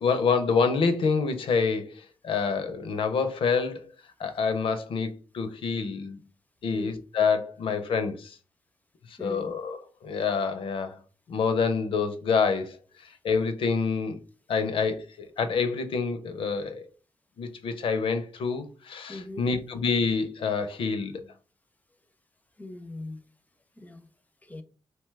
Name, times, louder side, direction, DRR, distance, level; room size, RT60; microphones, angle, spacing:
voice 1, 0.0-3.9 4.2-6.2 6.6-8.4 9.1-11.0 11.3-12.8 13.0-14.2 14.5-16.9 17.4-21.2, left 5 dB, 75° left, 0.5 m, -27 dB
voice 2, 9.2-9.5 19.1-19.6 22.6-23.2 23.8-24.0 24.4-24.6, left 1 dB, 15° left, 0.5 m, -40 dB
2.8 x 2.2 x 3.2 m
cardioid pair, 60°, 9 cm